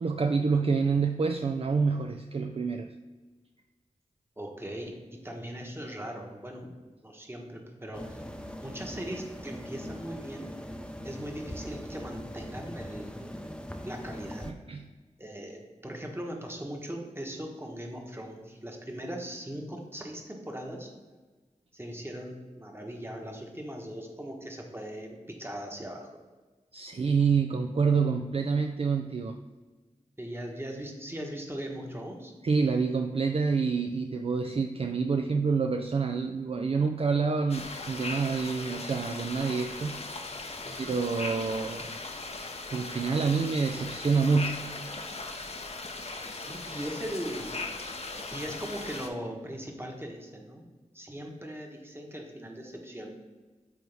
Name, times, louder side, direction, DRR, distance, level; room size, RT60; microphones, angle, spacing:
voice 1, 0.0-2.9 14.5-14.9 26.7-29.4 32.4-40.0 40.8-42.0 42.7-44.6, right 5 dB, 45° right, 5 dB, 0.4 m, -27 dB
voice 2, 4.4-6.7 7.0-8.2 8.6-10.5 11.0-13.3 13.8-14.5 15.2-20.9 21.7-26.1 30.2-32.3 40.6-41.0 46.3-47.6 48.3-50.6 50.9-53.1, equal, 20° right, 1 dB, 1.2 m, -39 dB
sound 1, 7.9-14.5, equal, 5° left, 0.6 m, -41 dB
sound 2, 37.5-49.1, left 3 dB, 50° left, 0.7 m, -38 dB
8.4 x 3.3 x 3.4 m, 1.3 s
cardioid pair, 40°, 13 cm